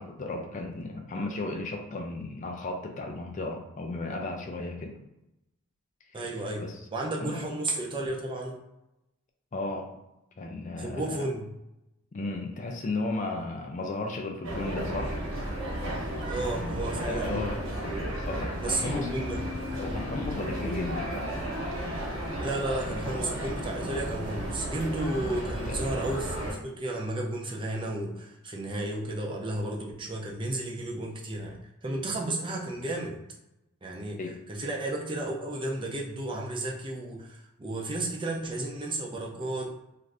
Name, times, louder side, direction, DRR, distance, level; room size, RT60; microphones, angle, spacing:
voice 1, 0.0-5.0 6.1-6.2 6.6-6.8 7.2-7.4 9.5-10.0 10.4-11.2 12.1-15.2 16.6-16.8 17.0-17.6 18.3-19.1 19.8-21.0 25.5-25.9 34.2-34.4, left 2 dB, 35° left, 2 dB, 0.3 m, -34 dB
voice 2, 6.1-6.6 6.9-8.6 10.8-11.5 16.2-17.5 18.6-19.4 22.4-33.2 33.8-34.2 34.5-39.7, right 2 dB, 20° right, -1 dB, 0.5 m, -33 dB
sound 1, 14.4-26.5, equal, 65° right, 1.1 m, -33 dB
2.6 x 2.4 x 3.2 m, 0.89 s
head